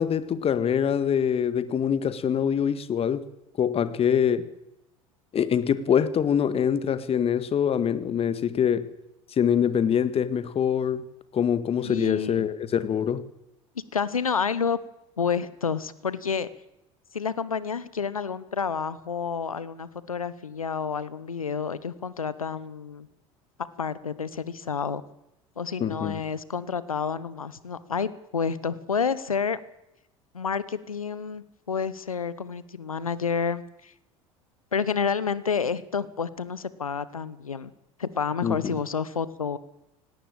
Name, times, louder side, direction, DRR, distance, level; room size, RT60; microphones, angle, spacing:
voice 1, 0.0-3.2 3.6-4.5 5.3-8.9 9.4-11.0 11.3-13.3 25.8-26.2 38.4-38.6, left 8 dB, 35° left, 1.7 m, -24 dB
voice 2, 11.8-12.4 13.9-14.8 15.2-16.5 17.1-23.1 23.8-25.0 25.6-29.6 30.3-33.9 34.7-37.7 38.0-39.6, left 6 dB, 85° left, 1.1 m, -29 dB
18.0 x 17.5 x 8.9 m
figure-of-eight pair, 70°, 17 cm